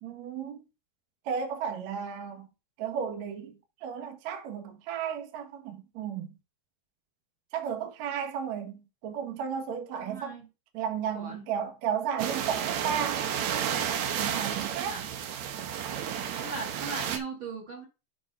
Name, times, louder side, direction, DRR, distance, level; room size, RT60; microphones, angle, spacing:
voice 1, 0.0-0.6 1.3-2.5 2.8-3.5 3.8-6.3 7.5-10.4 10.7-13.2 14.1-15.0, right 8 dB, 60° right, 2.1 m, -34 dB
voice 2, 10.0-10.5 11.1-11.5 14.7-15.0 16.4-17.9, right 4 dB, 40° right, 2.4 m, -39 dB
sound 1, 12.2-17.2, right 9 dB, 85° right, 1.6 m, -31 dB
10.0 x 3.9 x 5.4 m
omnidirectional pair, 4.8 m